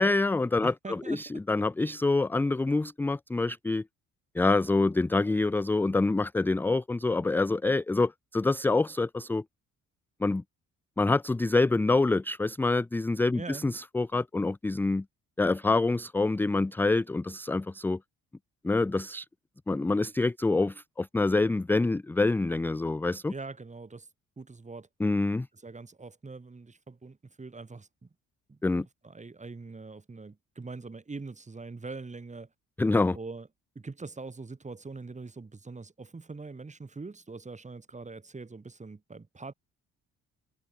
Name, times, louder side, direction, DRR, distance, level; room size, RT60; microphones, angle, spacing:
voice 1, 0.0-3.8 4.4-9.4 10.2-10.4 11.0-15.0 15.4-18.0 18.6-19.3 19.7-23.3 25.0-25.5 28.6-28.9 32.8-33.2, left 3 dB, 5° left, 0.3 m, -26 dB
voice 2, 0.6-1.4 13.3-13.6 23.3-24.1 24.4-24.9 25.5-28.1 28.5-32.5 33.1-33.5 33.8-39.5, right 3 dB, 25° right, 3.9 m, -43 dB
cardioid pair, 90°, 30 cm